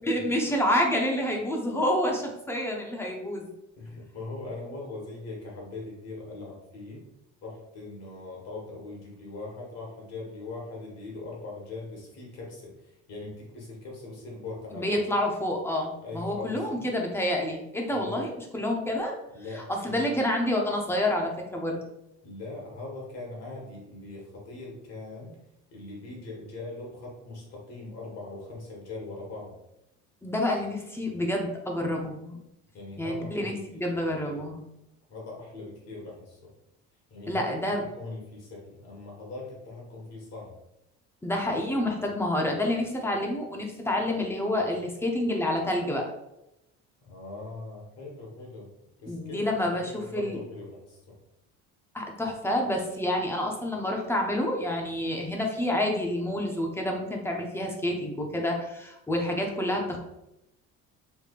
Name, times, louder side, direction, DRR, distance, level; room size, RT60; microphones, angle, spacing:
voice 1, 0.0-3.5 14.7-19.1 19.5-21.8 30.2-32.4 33.0-34.6 37.3-37.8 41.2-46.0 49.0-50.4 51.9-60.0, left 1 dB, 10° left, 1 dB, 0.5 m, -28 dB
voice 2, 3.8-7.0 7.4-15.0 16.0-16.9 17.9-18.3 19.3-20.0 22.2-25.4 25.7-29.5 32.7-34.4 35.1-36.5 37.1-37.5 38.0-40.5 47.0-48.7 49.0-51.1, left 2 dB, 55° left, -3 dB, 1.4 m, -41 dB
3.4 x 3.1 x 2.4 m, 0.86 s
cardioid pair, 130°, 30 cm